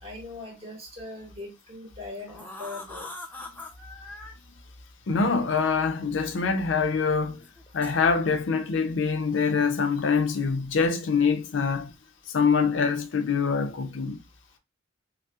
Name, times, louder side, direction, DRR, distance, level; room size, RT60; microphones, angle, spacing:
voice 1, 0.0-3.1, left 2 dB, 35° right, 2.0 m, -40 dB
sound 1, 1.4-1.6 2.1-4.3 5.5-5.6 6.3-6.4 7.4-8.0 9.8-10.6 10.8-11.2 11.8-12.0 12.4-12.8, left 2 dB, 10° left, 0.5 m, -43 dB
voice 2, 5.1-7.4 7.7-11.9 12.3-14.2, left 5 dB, 85° left, 0.5 m, -24 dB
5.4 x 2.0 x 2.3 m
head